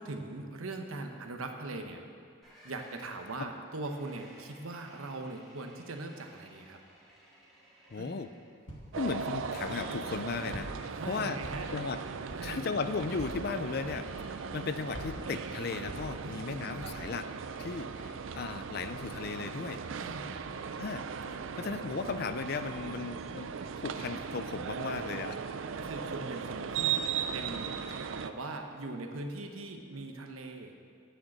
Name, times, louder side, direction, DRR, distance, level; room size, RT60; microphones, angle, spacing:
voice 1, 0.0-2.0 2.6-6.8 8.0-8.1 10.9-11.7 12.3-12.7 16.2-16.9 19.9-20.3 25.0-27.1 27.3-27.8 28.2-30.9, right 2 dB, 80° right, 5 dB, 1.0 m, -41 dB
sound 1, 2.4-8.7 9.1-9.9, equal, ahead, 2.1 m, -55 dB
voice 2, 7.9-8.3 9.0-11.4 11.7-12.0 12.4-17.3 17.6-19.8 20.8-21.1 21.6-23.5 23.8-25.4, left 4 dB, 45° left, 10 dB, 0.4 m, -36 dB
Walk footsteps, 8.7-9.1 9.6-10.1 10.5-11.0 11.4-11.9 12.3-12.6 13.1-13.5 14.0-14.5 14.9-16.4 16.8-17.2, equal, 65° left, 1.8 m, -45 dB
sound 2, 8.9-28.3, right 6 dB, 65° right, 0.4 m, -38 dB
9.1 x 6.5 x 7.3 m, 2.3 s
head